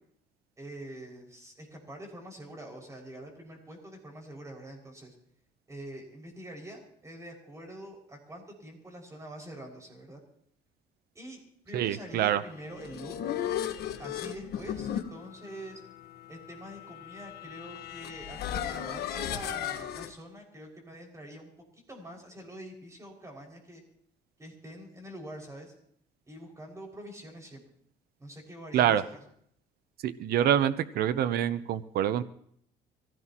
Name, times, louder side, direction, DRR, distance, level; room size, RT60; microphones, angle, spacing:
voice 1, 0.6-5.1 5.7-10.2 11.1-11.4 11.6-13.2 14.0-15.8 16.3-21.5 21.9-23.8 24.4-25.7 26.3-27.6 28.2-29.2, right 1 dB, 20° right, 1 dB, 5.9 m, -45 dB
voice 2, 11.7-12.4 28.7-29.0 30.0-32.2, right 10 dB, 65° right, 13 dB, 0.9 m, -26 dB
sound 1, 12.6-20.1, left 10 dB, 75° left, 1.5 m, -36 dB
25.0 x 17.0 x 3.0 m, 0.66 s
cardioid pair, 110°, 17 cm